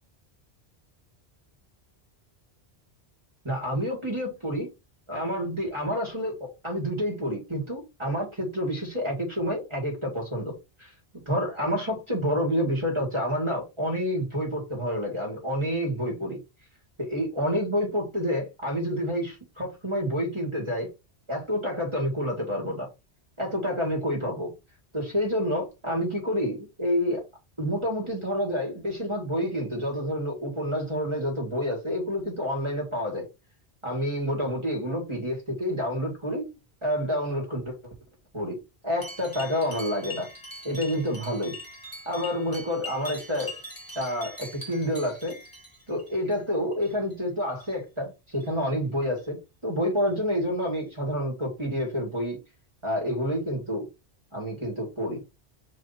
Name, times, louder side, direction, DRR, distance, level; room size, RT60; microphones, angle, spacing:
voice 1, 3.4-4.7 5.1-10.5 10.8-10.9 11.3-16.4 17.0-20.9 21.3-22.9 23.4-24.5 24.9-27.2 27.6-33.3 33.8-36.5 36.8-37.8 38.3-38.6 38.8-40.3 40.6-41.6 42.1-43.5 44.0-45.4 45.9-52.4 52.8-53.9 54.3-55.2, equal, 25° right, 1.9 m, -28 dB
sound 1, 39.0-46.4 46.7-47.1 47.5-47.8 48.3-48.5 49.2-49.3 50.0-50.1 50.8-50.9, left 1 dB, 20° left, 1.5 m, -42 dB
4.7 x 2.8 x 4.0 m
omnidirectional pair, 1.1 m